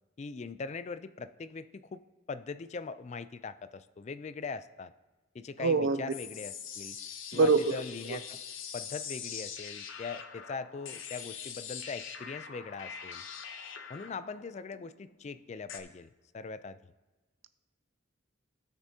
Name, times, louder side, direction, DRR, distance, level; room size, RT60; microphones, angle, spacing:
voice 1, 0.2-2.0 2.3-4.9 5.3-7.0 7.3-8.4 8.7-13.2 13.9-16.1 16.3-16.8, left 4 dB, 35° left, 13 dB, 0.3 m, -41 dB
voice 2, 5.6-6.1 7.3-7.8 8.1-8.2, right 4 dB, 75° right, 12 dB, 0.5 m, -25 dB
sound 1, 6.1-15.8, left 8 dB, 85° left, 0.8 m, -43 dB
17.0 x 6.1 x 2.8 m, 1.2 s
head